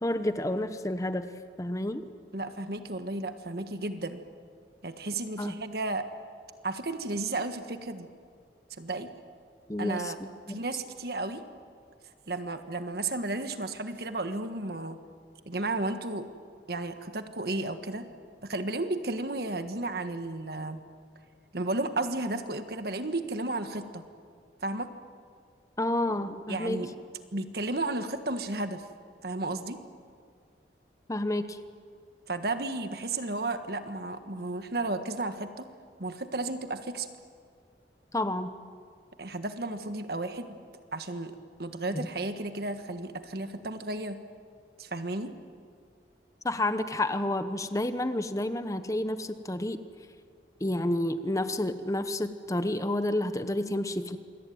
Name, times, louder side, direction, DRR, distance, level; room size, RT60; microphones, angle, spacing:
voice 1, 0.0-1.3 1.6-2.0 5.4-5.5 9.7-10.6 25.8-26.9 31.1-31.6 38.1-38.5 41.9-42.1 46.4-49.8 50.6-54.2, left 1 dB, 20° left, 10 dB, 0.9 m, -30 dB
voice 2, 2.3-4.2 4.8-6.1 6.6-8.1 8.8-9.1 9.8-10.2 10.5-11.4 12.3-15.0 15.5-16.3 16.7-18.1 18.4-20.8 21.5-24.0 24.6-24.9 26.5-26.9 27.3-28.9 29.2-29.8 32.3-35.7 36.0-37.1 39.2-40.6 40.9-44.2 44.8-45.3, right 2 dB, 60° right, 8 dB, 1.5 m, -33 dB
27.5 x 22.5 x 9.3 m, 2.2 s
head